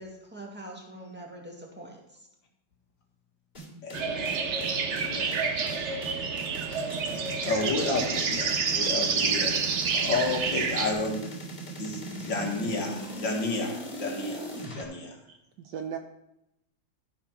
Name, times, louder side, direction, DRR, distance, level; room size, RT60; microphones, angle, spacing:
voice 1, 0.0-2.3, right 1 dB, 5° right, -1 dB, 1.7 m, -44 dB
sound 1, 3.5-14.8, right 1 dB, 20° left, 3.2 m, -39 dB
voice 2, 3.8-4.5 4.9-5.4 5.7-5.9 7.4-9.6 9.9-11.3 11.8-15.2, left 3 dB, 80° left, 0 dB, 2.4 m, -31 dB
sound 2, 3.9-10.9, right 5 dB, 50° right, 0.9 m, -29 dB
voice 3, 15.0-16.0, right 8 dB, 70° right, 5 dB, 1.3 m, -39 dB
12.5 x 4.5 x 5.8 m, 0.83 s
omnidirectional pair, 2.0 m